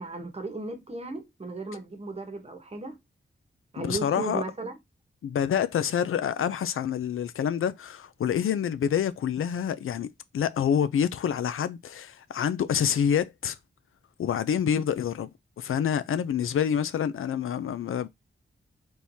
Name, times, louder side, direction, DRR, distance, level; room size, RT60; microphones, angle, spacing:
voice 1, 0.0-3.0 3.7-4.7, right 3 dB, 30° right, 1.0 m, -36 dB
voice 2, 3.8-4.4 5.2-10.1 10.3-13.6 14.2-15.3 15.6-18.1, left 8 dB, 85° left, 0.4 m, -27 dB
4.5 x 3.6 x 2.7 m
wide cardioid pair, 120°, 21 cm